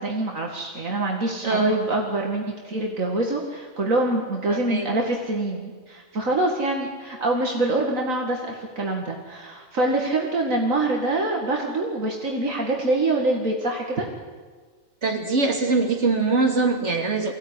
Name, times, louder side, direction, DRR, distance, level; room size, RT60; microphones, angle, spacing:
voice 1, 0.0-14.1, right 2 dB, 70° right, 0 dB, 2.5 m, -25 dB
voice 2, 1.4-1.8 4.5-4.9 15.0-17.3, right 3 dB, 55° right, 2 dB, 3.0 m, -23 dB
24.0 x 16.0 x 9.9 m, 1.5 s
omnidirectional pair, 1.5 m